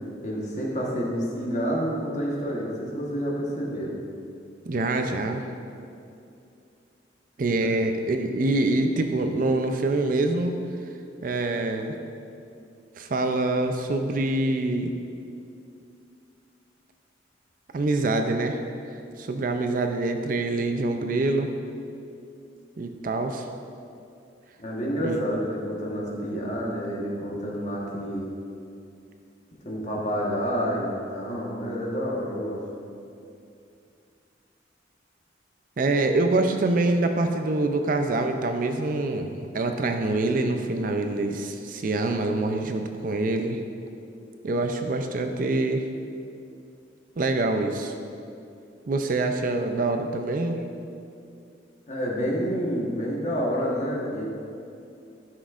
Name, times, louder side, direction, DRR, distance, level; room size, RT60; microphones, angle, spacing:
voice 1, 0.2-4.0 24.6-28.3 29.6-32.6 51.9-54.2, equal, 40° left, -3 dB, 1.3 m, -28 dB
voice 2, 4.7-5.4 7.4-10.6 11.2-12.0 13.0-14.9 17.7-18.6 19.2-21.5 22.8-23.4 25.0-25.2 35.8-43.6 44.4-45.9 47.2-47.9 48.9-50.6, right 2 dB, 45° right, 6 dB, 0.4 m, -25 dB
11.0 x 6.2 x 2.5 m, 2.5 s
head